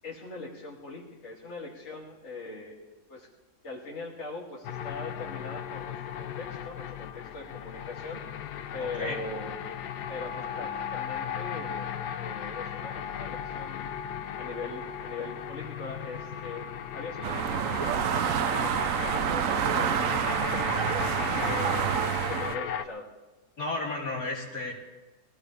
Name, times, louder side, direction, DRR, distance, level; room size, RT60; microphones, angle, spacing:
voice 1, 0.0-3.3 3.6-8.2 8.7-9.5 10.1-11.9 12.1-13.9 14.4-16.6 16.9-18.7 19.0-20.2 20.6-22.0 22.3-23.1, left 3 dB, 45° left, -6 dB, 2.7 m, -41 dB
sound 1, 4.6-22.9, left 8 dB, 80° left, 1.4 m, -36 dB
voice 2, 8.8-9.2 23.6-24.7, left 2 dB, 60° left, -4 dB, 4.0 m, -33 dB
sound 2, 17.2-22.6, right 9 dB, 60° right, 1.0 m, -28 dB
23.0 x 17.5 x 3.4 m, 1.2 s
omnidirectional pair, 1.7 m